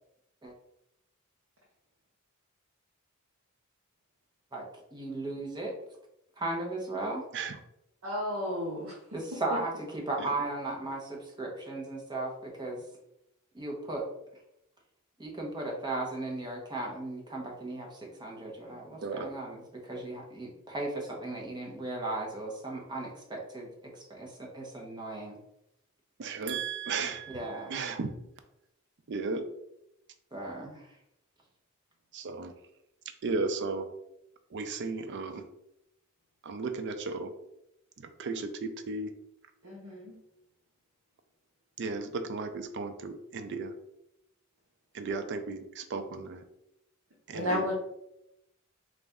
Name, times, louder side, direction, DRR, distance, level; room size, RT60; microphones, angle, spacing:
voice 1, 4.9-5.7 6.4-7.2 9.1-12.8 13.5-14.0 15.2-23.7 24.0-25.4 27.3-27.8 30.3-30.9, right 2 dB, 20° right, -1 dB, 0.9 m, -36 dB
voice 2, 8.0-8.9 39.6-40.1 47.3-47.7, left 1 dB, 75° right, -5 dB, 0.9 m, -32 dB
voice 3, 19.0-19.3 26.2-28.2 29.1-29.4 32.1-32.5 33.2-33.9 34.5-35.5 36.4-37.3 38.0-39.1 41.8-43.7 44.9-46.4 47.3-47.7, right 4 dB, 55° right, 8 dB, 0.4 m, -35 dB
4.0 x 2.5 x 3.4 m, 0.83 s
head